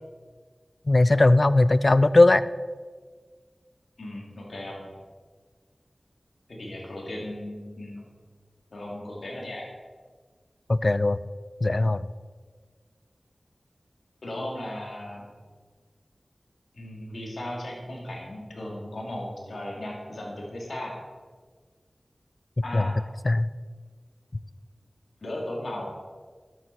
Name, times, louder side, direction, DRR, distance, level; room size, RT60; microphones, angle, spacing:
voice 1, 0.9-2.4 10.7-11.2 11.6-12.1 22.7-22.9 23.2-23.5, left 2 dB, 50° left, 16 dB, 0.4 m, -19 dB
voice 2, 4.0-4.9 6.5-8.1 8.7-9.7 14.2-15.2 16.7-20.9 22.6-22.9 25.2-25.9, left 1 dB, 85° left, -2 dB, 2.8 m, -36 dB
12.5 x 9.2 x 4.3 m, 1.5 s
wide cardioid pair, 55°, 0 cm